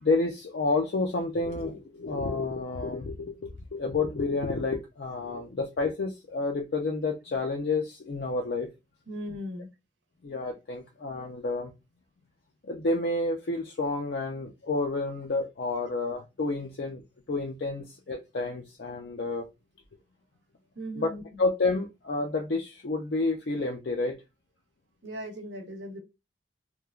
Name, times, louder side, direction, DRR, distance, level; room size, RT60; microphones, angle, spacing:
voice 1, 0.0-8.7 10.2-11.7 12.6-19.5 21.0-21.1 21.4-24.2, left 3 dB, 60° left, 0.4 m, -30 dB
voice 2, 9.1-9.7 20.7-21.4 25.0-26.0, equal, 85° right, 0.9 m, -38 dB
3.1 x 2.2 x 2.3 m
head